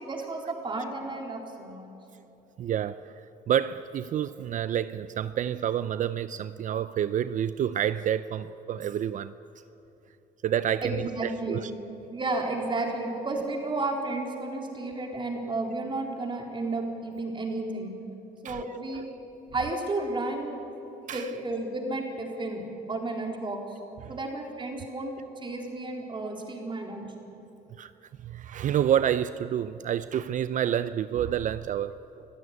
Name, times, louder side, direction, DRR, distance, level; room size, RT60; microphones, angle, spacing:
voice 1, 0.0-1.9 10.8-11.6 12.1-17.9 18.4-19.0 19.5-20.6 21.1-23.6 24.1-27.1, right 2 dB, 30° right, 4.0 m, -32 dB
voice 2, 2.6-3.1 3.5-9.3 10.4-11.7 18.4-18.6 19.1-19.2 21.1-21.3 24.0-24.1 27.8-27.9 28.2-32.2, right 10 dB, 50° right, 0.5 m, -28 dB
25.5 x 14.5 x 9.7 m
cardioid pair, 110°, 17 cm